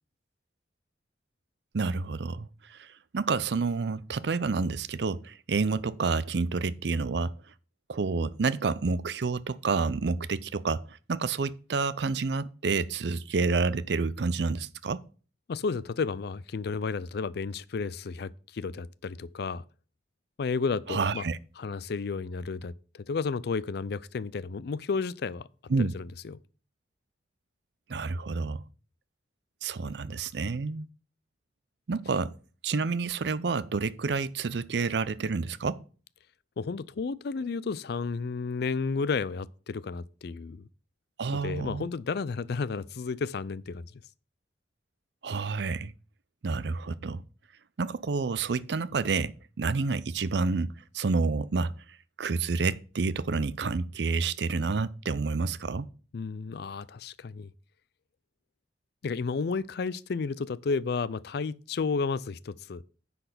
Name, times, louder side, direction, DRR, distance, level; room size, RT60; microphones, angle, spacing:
voice 1, 1.7-2.9 3.1-7.3 7.9-15.0 20.9-21.4 25.7-25.9 27.9-28.6 29.6-30.9 31.9-32.3 32.6-35.8 41.2-41.9 45.2-45.9 46.4-47.2 47.8-51.7 52.2-55.9, right 4 dB, 70° right, 0.5 m, -29 dB
voice 2, 15.5-19.6 20.4-21.2 21.6-25.5 25.8-26.4 36.6-40.7 41.4-43.9 56.1-57.5 59.0-62.8, left 4 dB, 65° left, 0.4 m, -32 dB
9.9 x 4.2 x 6.7 m
head